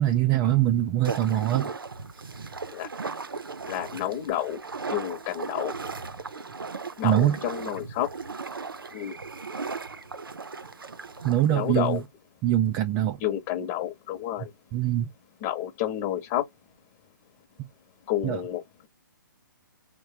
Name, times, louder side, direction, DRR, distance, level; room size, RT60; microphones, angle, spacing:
voice 1, 0.0-1.7 7.0-7.4 11.2-12.0 12.4-13.2 14.7-15.1 18.2-18.4, right 12 dB, 20° right, 0.4 m, -23 dB
sound 1, 1.0-12.1, right 4 dB, 85° right, 0.5 m, -37 dB
voice 2, 3.6-4.6 4.9-5.7 7.0-8.1 8.9-9.2 11.5-12.0 13.2-14.5 15.4-16.4 18.1-18.9, left 12 dB, 30° left, 0.9 m, -30 dB
3.2 x 2.1 x 2.7 m
figure-of-eight pair, 135°, 11 cm